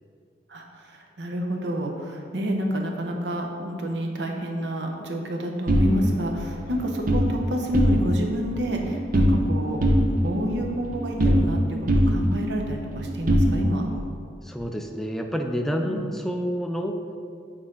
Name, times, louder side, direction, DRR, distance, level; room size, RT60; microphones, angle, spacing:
voice 1, 0.5-13.8 15.8-16.0, equal, 80° right, 2 dB, 0.8 m, -29 dB
sound 1, 5.7-7.3 7.6-8.3 8.6-9.5 9.8-11.6 11.9-14.0, equal, 50° right, 0.7 m, -22 dB
voice 2, 14.4-17.0, equal, ahead, 3 dB, 0.3 m, -28 dB
6.4 x 4.3 x 3.8 m, 2.3 s
head